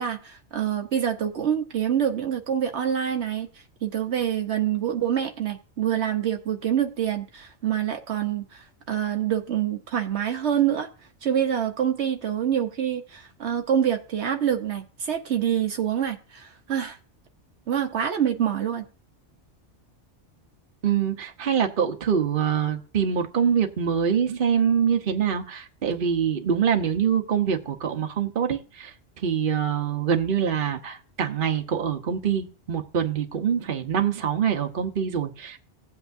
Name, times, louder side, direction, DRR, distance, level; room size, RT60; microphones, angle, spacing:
voice 1, 0.0-3.5 3.8-10.9 11.2-17.0 17.7-18.8, right 9 dB, 70° right, 1.2 m, -26 dB
voice 2, 20.8-35.6, right 7 dB, 50° right, 1.1 m, -25 dB
16.5 x 8.2 x 2.6 m
omnidirectional pair, 1.2 m